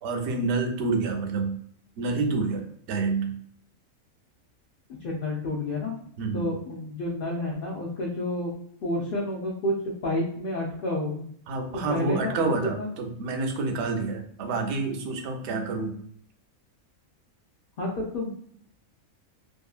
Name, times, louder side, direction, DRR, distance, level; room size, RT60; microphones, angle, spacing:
voice 1, 0.0-1.5 2.0-3.4 6.2-6.5 11.5-16.0, right 3 dB, 65° right, 4 dB, 0.8 m, -28 dB
voice 2, 5.0-5.9 6.3-8.5 8.8-9.7 10.0-11.2 11.9-12.9 17.8-18.3, left 1 dB, 60° left, -3 dB, 0.5 m, -30 dB
2.7 x 2.6 x 2.3 m, 0.65 s
omnidirectional pair, 1.4 m